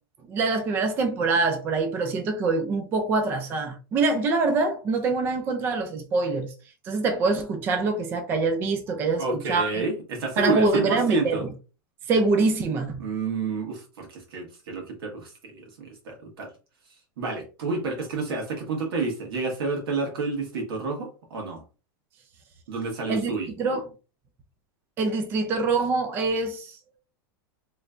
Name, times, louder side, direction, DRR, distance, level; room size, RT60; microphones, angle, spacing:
voice 1, 0.3-6.5 6.8-9.8 10.4-11.5 12.1-13.0 23.1-23.3 23.6-23.9 25.0-26.8, right 3 dB, 20° right, 0.4 m, -24 dB
voice 2, 9.2-11.4 13.0-16.5 17.2-21.6 22.7-23.5, right 3 dB, 80° right, 1.4 m, -29 dB
3.2 x 3.1 x 2.4 m
supercardioid pair, 170°, 13 cm